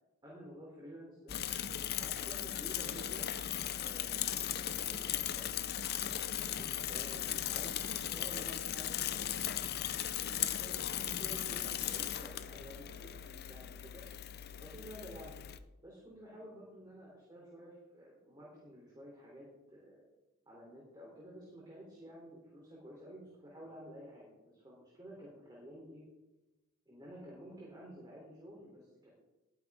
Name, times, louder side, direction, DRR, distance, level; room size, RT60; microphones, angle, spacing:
voice 1, 0.2-1.4 1.9-3.3 3.8-5.6 6.3-9.9 10.2-14.0 14.6-15.4 15.8-20.0 20.5-26.0 26.8-29.1, equal, 20° right, -4 dB, 3.3 m, -52 dB
Bicycle / Mechanisms, 1.3-15.6, left 11 dB, 50° left, 0.6 m, -37 dB
19.5 x 9.1 x 3.6 m, 1.0 s
head